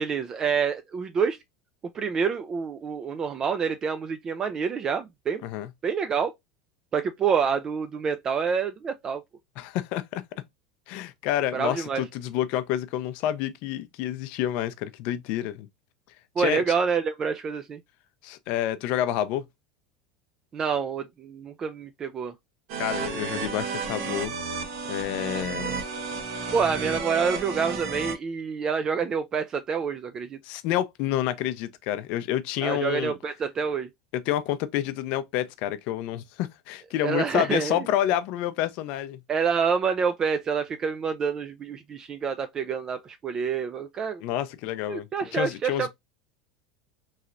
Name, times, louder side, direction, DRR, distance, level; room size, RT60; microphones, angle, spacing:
voice 1, 0.0-1.4 1.9-5.5 5.8-6.3 6.9-9.2 11.5-12.0 16.4-17.8 20.5-22.3 26.5-30.4 32.6-33.9 37.0-37.8 39.3-44.2 44.9-45.9, right 6 dB, 30° right, 0.3 m, -27 dB
voice 2, 9.6-10.2 10.9-15.7 16.4-16.6 18.2-19.4 22.8-24.3 24.8-25.8 30.4-33.2 34.1-39.2 44.2-45.9, left 12 dB, 60° left, 0.5 m, -28 dB
sound 1, 22.7-28.1, right 5 dB, 65° right, 0.9 m, -32 dB
3.1 x 2.8 x 2.4 m
supercardioid pair, 110°, 2 cm